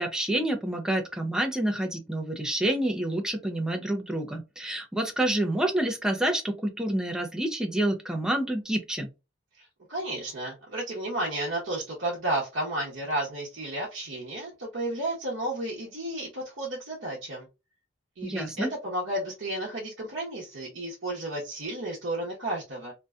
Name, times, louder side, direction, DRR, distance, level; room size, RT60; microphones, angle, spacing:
voice 1, 0.0-9.1 18.2-18.7, right 1 dB, 5° right, 3 dB, 0.4 m, -28 dB
voice 2, 9.6-17.5 18.2-22.9, right 1 dB, 70° right, -5 dB, 0.8 m, -32 dB
2.6 x 2.2 x 2.4 m, 0.27 s
head